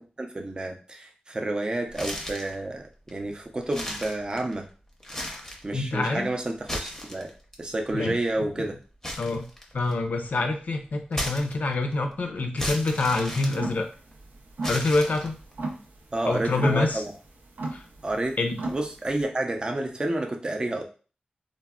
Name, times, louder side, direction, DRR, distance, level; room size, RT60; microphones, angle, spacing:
voice 1, 0.2-4.7 5.6-7.3 7.6-8.8 16.1-17.1 18.0-18.4 18.7-20.8, right 2 dB, 30° right, 2 dB, 0.4 m, -30 dB
sound 1, 1.9-2.6 3.1-3.2 3.6-4.6 5.0-5.7 6.5-7.5 9.0-10.1 11.1-11.9 12.6-14.1 14.6-15.5, left 1 dB, 15° left, 0.6 m, -35 dB
voice 2, 5.7-6.3 7.9-8.2 9.2-9.5 9.7-13.9 14.7-15.4 16.2-17.0 17.7-17.8 18.4-18.6, left 3 dB, 65° left, 5 dB, 0.5 m, -26 dB
sound 2, 13.5-19.2, right 2 dB, 90° right, 0.5 m, -36 dB
3.3 x 2.0 x 2.3 m, 0.37 s
wide cardioid pair, 90°, 3 cm